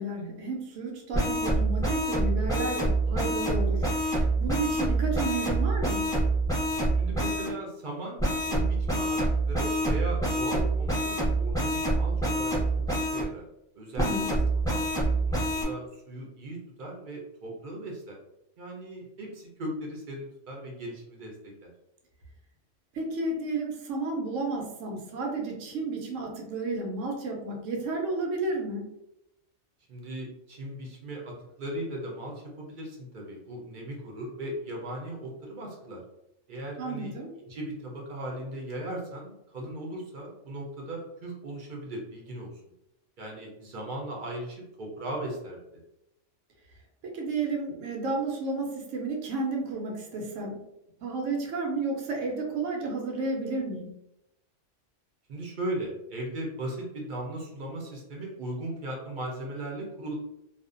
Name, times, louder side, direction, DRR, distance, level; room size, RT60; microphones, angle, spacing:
voice 1, 0.0-6.1 14.0-14.3 22.9-28.8 36.8-37.3 47.0-50.6 51.0-53.9, right 3 dB, 85° right, 0 dB, 1.0 m, -32 dB
sound 1, 1.1-7.5 8.2-13.2 14.0-15.6, right 2 dB, 5° left, 0.3 m, -26 dB
voice 2, 7.0-9.2 9.5-13.4 13.8-14.4 14.7-18.2 18.6-21.3 21.6-21.7 29.9-36.0 36.5-42.5 43.2-45.6 55.3-60.1, right 1 dB, 55° right, -2 dB, 0.6 m, -38 dB
2.4 x 2.1 x 2.4 m, 0.86 s
omnidirectional pair, 1.3 m